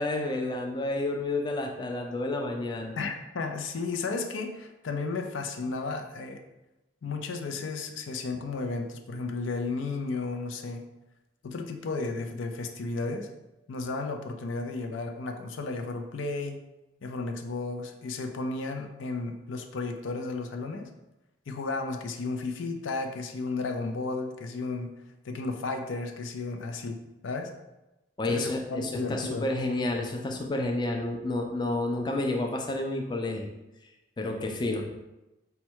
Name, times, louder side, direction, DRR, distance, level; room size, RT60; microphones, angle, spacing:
voice 1, 0.0-2.9 28.2-33.5 34.2-34.9, left 2 dB, 25° left, 1 dB, 0.4 m, -30 dB
voice 2, 3.0-6.4 7.0-10.8 11.4-13.3 13.7-16.6 17.0-20.9 21.5-24.9 25.2-27.5 28.3-29.5, left 3 dB, 90° left, 5 dB, 0.5 m, -33 dB
4.4 x 2.2 x 4.4 m, 0.98 s
head